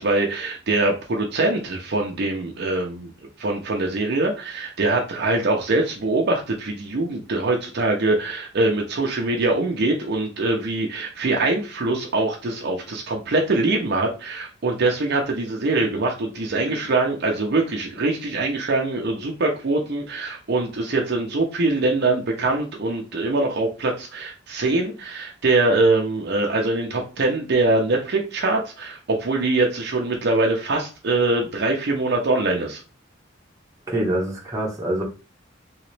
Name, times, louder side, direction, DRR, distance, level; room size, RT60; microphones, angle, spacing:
voice 1, 0.0-3.1 3.4-32.8, right 2 dB, 55° right, 1 dB, 0.6 m, -23 dB
voice 2, 33.9-35.0, right 1 dB, 15° right, -3 dB, 0.9 m, -25 dB
3.1 x 3.0 x 3.2 m, 0.33 s
head